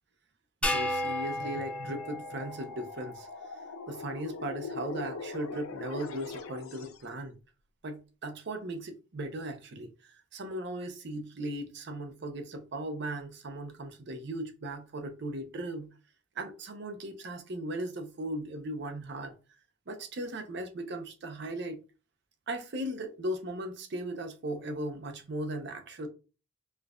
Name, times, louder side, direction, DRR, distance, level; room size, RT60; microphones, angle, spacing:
sound 1, 0.6-3.2, left 1 dB, 5° left, 0.3 m, -33 dB
voice 1, 0.6-3.3 3.9-7.4 7.8-9.9 10.3-15.9 16.4-19.3 19.9-21.8 22.5-26.1, right 1 dB, 55° right, 0.6 m, -37 dB
sound 2, 1.3-7.1, left 4 dB, 85° left, 0.4 m, -42 dB
4.4 x 2.4 x 2.2 m
head